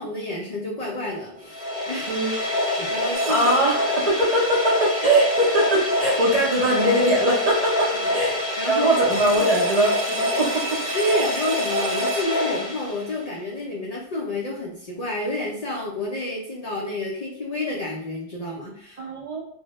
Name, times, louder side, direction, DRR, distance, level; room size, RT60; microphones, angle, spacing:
voice 1, 0.0-2.2 2.5-3.4 8.0-8.1 8.6-8.9 10.9-19.0, left 1 dB, 65° left, -3 dB, 0.4 m, -30 dB
sound 1, 1.4-13.3, left 1 dB, 10° right, 0.9 m, -26 dB
sound 2, 3.1-3.9 9.1-12.2, right 5 dB, 80° right, 0.9 m, -35 dB
voice 2, 3.3-10.8 19.0-19.4, right 1 dB, 45° right, -5 dB, 0.5 m, -21 dB
2.1 x 2.0 x 2.8 m, 0.67 s
omnidirectional pair, 1.2 m